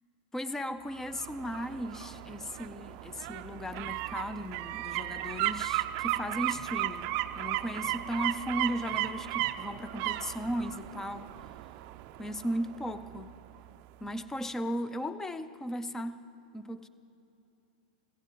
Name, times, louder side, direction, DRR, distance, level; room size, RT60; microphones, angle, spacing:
voice 1, 0.3-11.3 12.2-13.3 14.0-16.3 16.5-16.9, equal, 10° left, 13 dB, 0.5 m, -36 dB
sound 1, 0.9-13.7 14.1-14.2, right 16 dB, 45° right, 0.4 m, -35 dB
15.5 x 15.5 x 4.7 m, 2.9 s
hypercardioid pair, 135°, 5 cm